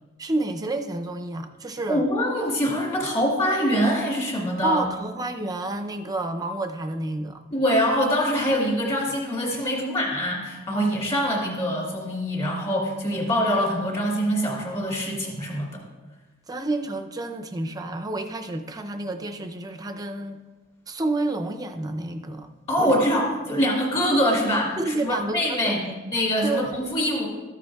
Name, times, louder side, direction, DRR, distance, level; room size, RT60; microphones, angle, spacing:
voice 1, 0.2-2.0 4.6-7.4 16.5-20.4 20.9-22.5 22.8-23.2 24.8-26.0 26.4-26.8, right 2 dB, 15° right, 6 dB, 0.5 m, -29 dB
voice 2, 1.9-4.8 7.5-15.9 22.7-27.3, equal, 30° left, -2 dB, 2.3 m, -24 dB
13.5 x 9.6 x 2.3 m, 1.2 s
head